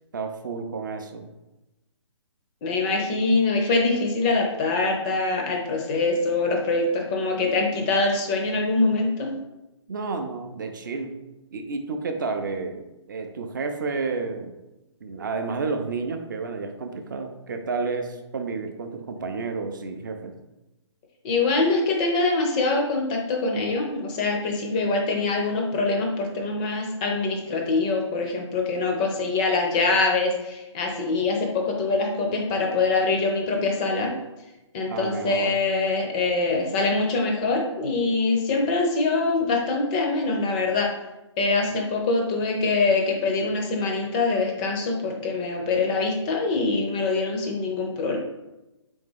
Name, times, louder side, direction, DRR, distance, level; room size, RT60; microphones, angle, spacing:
voice 1, 0.1-1.3 9.9-11.2 11.5-14.5 15.0-20.4 34.9-35.6, right 4 dB, 40° right, 6 dB, 0.4 m, -31 dB
voice 2, 2.6-9.3 21.2-34.1 34.7-40.9 41.4-48.2, left 3 dB, 15° left, 1 dB, 0.4 m, -24 dB
3.5 x 3.4 x 3.3 m, 0.98 s
figure-of-eight pair, 135°, 16 cm